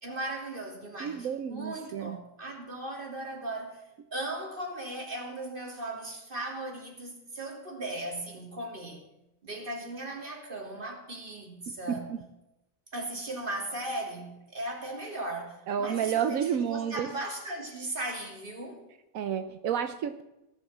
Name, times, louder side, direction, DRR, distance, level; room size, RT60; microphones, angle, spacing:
voice 1, 0.0-3.8 4.1-9.0 9.4-12.2 12.9-18.8, right 1 dB, 40° right, 3.2 m, -37 dB
voice 2, 1.0-2.2 11.9-12.0 15.7-17.1 19.1-20.2, right 8 dB, 85° right, 1.2 m, -30 dB
18.5 x 7.0 x 7.3 m
omnidirectional pair, 1.4 m